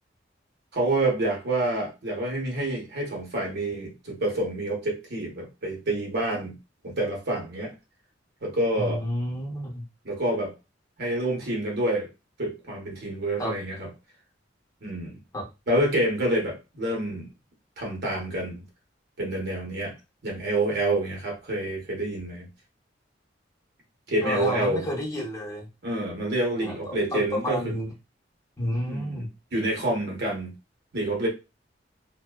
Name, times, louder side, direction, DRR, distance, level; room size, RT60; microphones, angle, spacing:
voice 1, 0.7-6.5 6.8-7.7 8.4-9.0 10.0-10.5 11.0-12.1 12.4-13.9 14.8-15.2 15.7-17.3 17.8-18.6 19.2-19.9 20.2-22.5 24.1-24.9 25.8-27.7 28.9-29.2 29.5-30.5 30.9-31.3, right 1 dB, 60° right, 0.9 m, -27 dB
voice 2, 8.7-9.8 13.4-13.5 15.3-15.5 24.2-25.7 26.6-27.9 28.6-29.3, equal, 20° left, 0.8 m, -30 dB
2.5 x 2.1 x 2.3 m
head